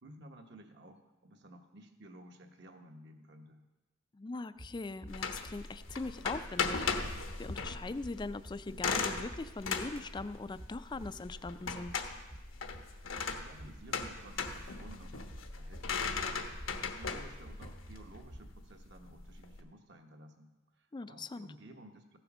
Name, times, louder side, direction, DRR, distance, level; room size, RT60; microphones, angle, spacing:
voice 1, 0.0-3.6 13.3-22.2, right 1 dB, 60° right, 4 dB, 1.2 m, -54 dB
voice 2, 4.1-6.9 7.4-12.1 20.9-21.5, left 3 dB, 25° left, 13 dB, 0.4 m, -41 dB
sound 1, 4.6-18.5, equal, 25° right, 0.6 m, -53 dB
sound 2, 5.1-19.6, left 5 dB, 85° left, 1.1 m, -38 dB
15.0 x 7.9 x 6.1 m, 1.1 s
head